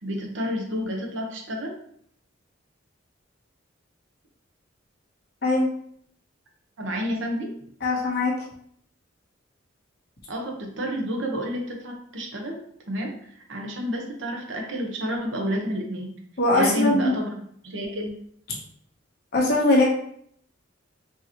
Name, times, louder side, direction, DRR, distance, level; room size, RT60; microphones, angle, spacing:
voice 1, 0.0-1.7 6.8-7.5 10.3-12.6 12.9-16.1 16.5-17.3 17.6-18.1, equal, 70° right, 0 dB, 1.0 m, -30 dB
voice 2, 7.8-8.3 16.4-17.1 19.3-19.8, left 2 dB, 55° left, -3 dB, 1.2 m, -20 dB
4.6 x 3.0 x 3.0 m, 0.66 s
head